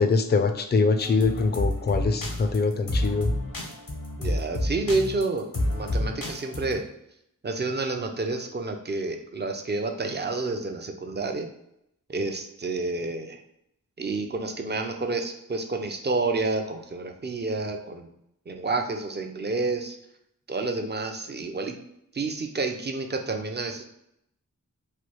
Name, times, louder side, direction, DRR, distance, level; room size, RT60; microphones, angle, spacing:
voice 1, 0.0-3.3, left 4 dB, 30° left, 7 dB, 0.4 m, -23 dB
sound 1, 1.0-6.7, left 1 dB, 85° left, 0.8 m, -29 dB
voice 2, 4.2-6.8 7.4-11.5 12.1-13.4 14.0-18.1 18.5-20.0 20.5-21.8 22.1-23.8, right 3 dB, 30° right, 4 dB, 0.5 m, -29 dB
3.2 x 2.3 x 3.0 m, 0.78 s
wide cardioid pair, 40°, 34 cm